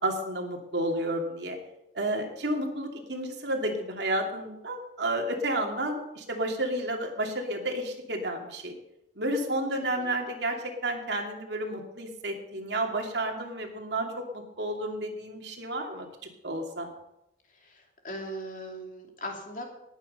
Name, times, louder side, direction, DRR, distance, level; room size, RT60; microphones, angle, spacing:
voice 1, 0.0-1.6 1.9-8.7 9.2-16.1 16.4-16.9, right 1 dB, 75° right, 2 dB, 2.6 m, -31 dB
voice 2, 17.5-19.6, equal, 45° left, 2 dB, 2.8 m, -39 dB
19.0 x 9.2 x 5.6 m, 0.86 s
head